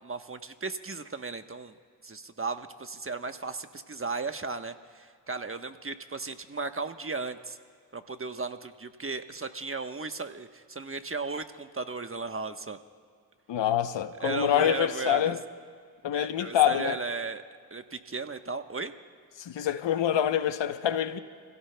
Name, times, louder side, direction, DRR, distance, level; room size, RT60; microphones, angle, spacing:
voice 1, 0.0-1.7 2.0-7.6 7.9-12.8 14.2-15.4 16.1-17.4 17.7-18.9, right 4 dB, 30° right, 1.2 m, -35 dB
voice 2, 13.5-15.4 16.0-17.0 19.5-21.2, left 10 dB, 75° left, 1.0 m, -26 dB
29.5 x 16.5 x 2.3 m
supercardioid pair, 40°, 44 cm